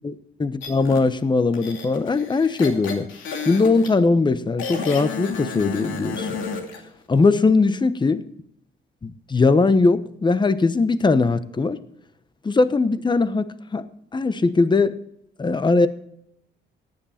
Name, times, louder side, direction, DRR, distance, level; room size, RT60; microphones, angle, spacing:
voice 1, 0.4-3.1 3.5-6.3 7.1-8.2 9.0-11.8 12.4-13.5 13.7-13.9 14.1-15.0 15.4-15.9, left 3 dB, 25° left, 13 dB, 1.0 m, -20 dB
sound 1, 0.6-1.0 1.5-3.9 4.6-6.8, left 5 dB, 80° left, 2.6 m, -31 dB
15.0 x 10.5 x 4.3 m, 0.74 s
cardioid pair, 90°, 20 cm